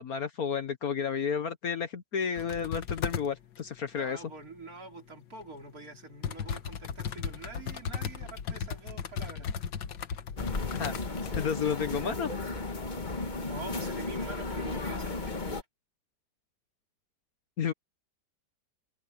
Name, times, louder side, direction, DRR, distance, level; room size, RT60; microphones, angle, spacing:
voice 1, 0.0-4.2 10.8-10.9 11.4-12.3 17.6-17.7, left 7 dB, 55° left, 1.5 m, -31 dB
sound 1, 2.4-3.3 5.4-5.5 6.2-11.6 11.9-12.0, left 7 dB, 75° left, 1.9 m, -36 dB
voice 2, 3.9-9.5 13.4-15.6, right 3 dB, 50° right, 3.8 m, -45 dB
sound 2, 10.4-15.6, left 3 dB, 25° left, 1.5 m, -34 dB
omnidirectional pair, 2.0 m